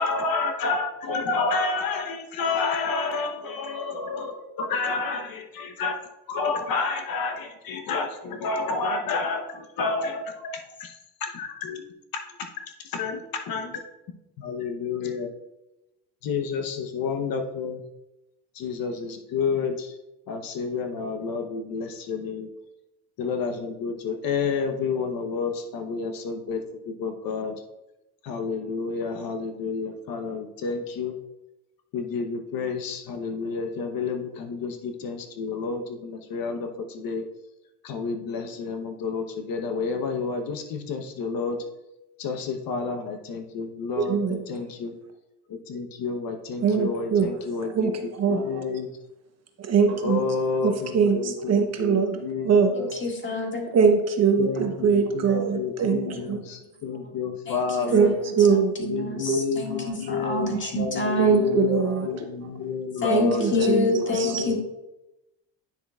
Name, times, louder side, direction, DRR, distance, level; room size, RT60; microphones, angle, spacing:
voice 1, 0.0-6.0 6.3-11.8 12.4-12.5 12.8-13.8 14.4-15.3 16.2-17.8 18.5-20.0 20.3-22.5 23.2-26.6 26.9-27.5 28.2-31.1 31.9-37.2 37.8-41.6 42.2-44.9 45.5-48.9 50.0-53.2 54.4-58.1 58.8-64.6, left 4 dB, 50° left, 5 dB, 0.9 m, -30 dB
voice 2, 44.0-44.4 46.6-47.3 47.8-48.6 49.7-50.2 50.6-52.2 52.4-52.7 53.7-56.4 57.9-58.7 59.3-59.4 61.2-62.1 63.1-63.9 64.1-64.4, right 6 dB, 35° right, 5 dB, 0.9 m, -22 dB
voice 3, 52.8-53.7 57.5-57.9 58.4-61.5 63.0-64.6, left 2 dB, 25° left, 1 dB, 1.8 m, -27 dB
9.9 x 6.2 x 2.3 m, 0.94 s
supercardioid pair, 110°, 44 cm